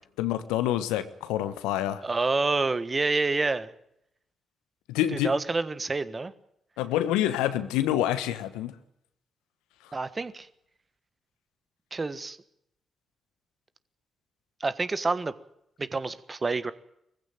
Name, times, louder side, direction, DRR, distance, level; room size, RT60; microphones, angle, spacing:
voice 1, 0.2-2.0 4.9-5.3 6.8-8.7 9.8-9.9, left 12 dB, 80° left, 12 dB, 1.1 m, -27 dB
voice 2, 2.0-3.7 5.1-6.3 9.9-10.5 11.9-12.4 14.6-15.3 15.8-16.7, right 3 dB, 35° right, 14 dB, 1.5 m, -28 dB
20.5 x 15.0 x 9.2 m, 0.77 s
hypercardioid pair, 40°, 0 cm